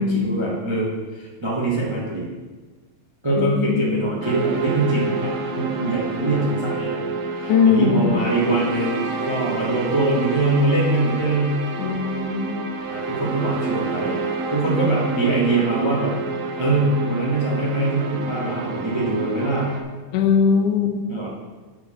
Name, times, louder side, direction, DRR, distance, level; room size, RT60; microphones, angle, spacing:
voice 1, 0.0-2.3 3.2-7.0 7.3-11.6 12.9-14.2 14.5-16.1 16.6-19.7 21.1-21.3, right 2 dB, 25° right, -5 dB, 0.5 m, -23 dB
voice 2, 3.4-4.1 7.5-8.2 11.8-12.6 20.1-21.0, left 6 dB, 85° left, 5 dB, 2.3 m, -20 dB
sound 1, 4.2-19.8, right 4 dB, 70° right, 1.9 m, -29 dB
7.9 x 4.9 x 6.5 m, 1.3 s
omnidirectional pair, 3.5 m